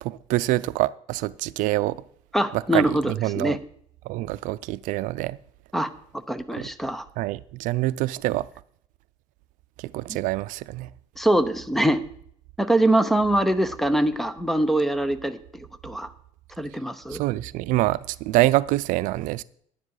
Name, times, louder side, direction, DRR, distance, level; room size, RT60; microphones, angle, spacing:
voice 1, 0.0-2.0 2.5-3.6 4.1-5.4 6.6-6.7 7.2-8.5 9.8-10.9 17.1-19.4, right 17 dB, 85° right, 0.4 m, -25 dB
voice 2, 2.3-3.6 5.7-5.9 6.3-7.0 11.2-12.0 12.6-16.1 16.6-17.2, right 1 dB, ahead, 0.8 m, -23 dB
11.0 x 9.7 x 4.8 m
cardioid pair, 125°, 13 cm